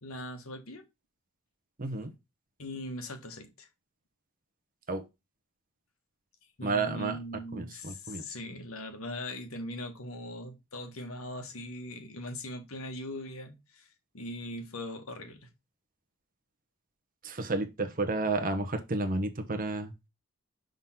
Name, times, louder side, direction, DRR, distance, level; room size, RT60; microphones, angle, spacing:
voice 1, 0.0-0.8 2.6-3.7 6.6-13.9 14.1-15.5, left 1 dB, 70° left, 1.5 m, -40 dB
voice 2, 1.8-2.1 4.9-5.0 6.6-7.2 7.6-8.2 17.2-19.9, right 3 dB, 40° right, 1.0 m, -31 dB
6.1 x 3.9 x 5.7 m
head